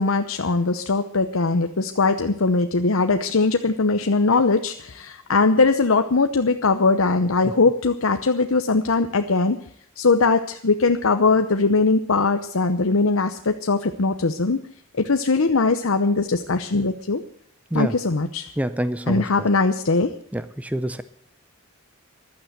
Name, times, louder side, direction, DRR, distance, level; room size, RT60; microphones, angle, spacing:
voice 1, 0.0-9.6 10.0-14.6 14.9-17.2 17.7-18.5 19.1-20.1, left 3 dB, 75° left, 7 dB, 0.8 m, -20 dB
voice 2, 18.6-19.5 20.3-21.0, right 1 dB, 5° right, 12 dB, 0.6 m, -26 dB
15.0 x 12.0 x 8.0 m, 0.63 s
head